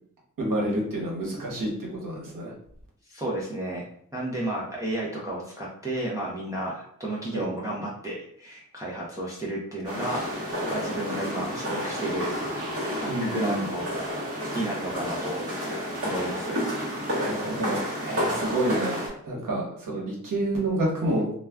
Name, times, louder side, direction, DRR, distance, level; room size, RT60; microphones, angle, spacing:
voice 1, 0.4-2.5 7.3-7.4 13.1-13.6 17.1-21.3, right 1 dB, 85° right, -3 dB, 1.0 m, -29 dB
voice 2, 3.1-3.9 4.1-12.4 13.0-13.9 14.2-15.4 15.7-16.6, right 1 dB, 10° right, -5 dB, 0.4 m, -32 dB
sound 1, 9.8-19.1, equal, 45° right, 1.0 m, -31 dB
2.3 x 2.2 x 3.3 m, 0.66 s
wide cardioid pair, 155°, 32 cm